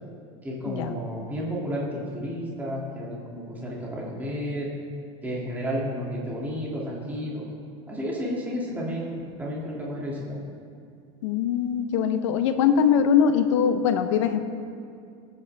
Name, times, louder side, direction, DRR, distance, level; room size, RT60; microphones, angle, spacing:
voice 1, 0.4-4.7 5.2-7.5 7.9-10.4, equal, 10° right, -5 dB, 2.7 m, -32 dB
voice 2, 11.2-14.4, left 7 dB, 80° left, 9 dB, 1.1 m, -22 dB
20.5 x 9.3 x 3.6 m, 2.4 s
supercardioid pair, 155°, 15 cm